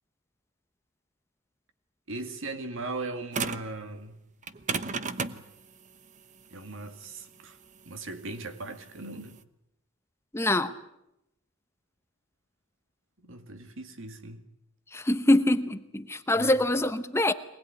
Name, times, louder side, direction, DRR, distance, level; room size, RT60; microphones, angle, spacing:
voice 1, 2.1-4.2 6.5-7.6 7.9-9.4 13.2-14.4 16.3-16.5, right 2 dB, 65° right, 2.1 m, -38 dB
sound 1, 3.3-3.7 4.4-9.4, right 5 dB, 35° right, 0.9 m, -34 dB
voice 2, 10.3-10.7 14.9-17.3, left 1 dB, 10° left, 0.8 m, -24 dB
23.5 x 19.0 x 9.5 m
head